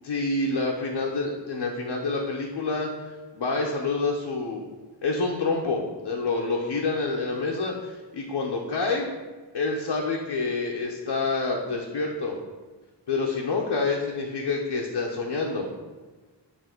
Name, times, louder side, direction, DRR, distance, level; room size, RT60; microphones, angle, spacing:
voice 1, 0.0-4.6 5.0-9.1 9.5-12.4 13.1-15.7, left 3 dB, 80° left, -2 dB, 0.9 m, -27 dB
7.3 x 2.9 x 5.8 m, 1.3 s
cardioid pair, 55°, 43 cm